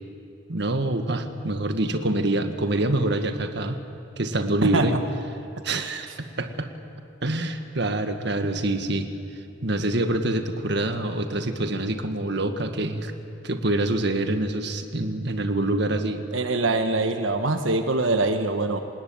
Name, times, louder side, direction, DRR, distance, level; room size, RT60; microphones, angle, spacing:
voice 1, 0.5-3.8 4.2-4.9 5.6-6.7 7.2-9.1 9.6-13.1 13.4-16.2, right 2 dB, 60° right, 7 dB, 1.7 m, -26 dB
voice 2, 16.3-18.8, right 2 dB, 90° right, 7 dB, 1.3 m, -23 dB
27.5 x 19.5 x 8.8 m, 2.7 s
head